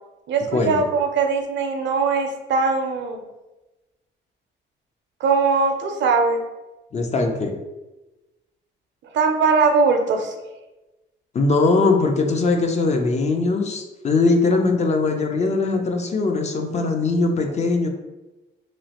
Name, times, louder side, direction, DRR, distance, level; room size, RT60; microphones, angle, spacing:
voice 1, 0.3-3.2 5.2-6.4 9.1-10.3, right 4 dB, 65° right, 4 dB, 0.5 m, -20 dB
voice 2, 6.9-7.6 11.3-17.9, left 3 dB, 35° left, 4 dB, 0.4 m, -20 dB
3.0 x 2.4 x 2.8 m, 1.1 s
cardioid pair, 90°, 20 cm